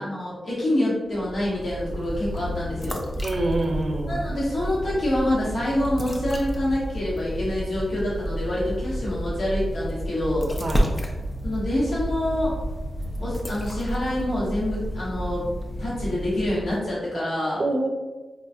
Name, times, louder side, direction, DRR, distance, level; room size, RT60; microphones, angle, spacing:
voice 1, 0.0-3.0 4.0-10.5 11.4-12.5 13.2-15.5 15.8-17.6, left 1 dB, 70° left, -8 dB, 1.2 m, -26 dB
sound 1, 1.1-17.0, equal, 20° left, 0.5 m, -31 dB
voice 2, 3.2-4.2 10.6-10.9 17.6-17.9, right 2 dB, 40° right, 3 dB, 0.5 m, -25 dB
4.8 x 2.3 x 2.6 m, 1.2 s
wide cardioid pair, 105°, 0 cm